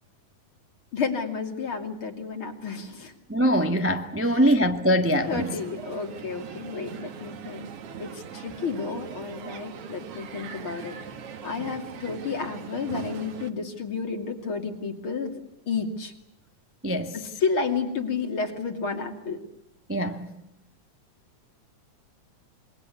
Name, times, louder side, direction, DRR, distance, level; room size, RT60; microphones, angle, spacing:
voice 1, 0.9-3.1 5.3-7.7 8.0-11.0 11.4-15.4 15.7-16.1 17.4-19.4, left 5 dB, 45° left, 3.3 m, -31 dB
voice 2, 3.3-5.6 16.8-17.2 19.9-20.3, equal, 10° right, 0.9 m, -23 dB
Crowd, 5.2-13.5, right 7 dB, 55° right, 2.2 m, -41 dB
28.0 x 23.0 x 8.4 m
omnidirectional pair, 3.5 m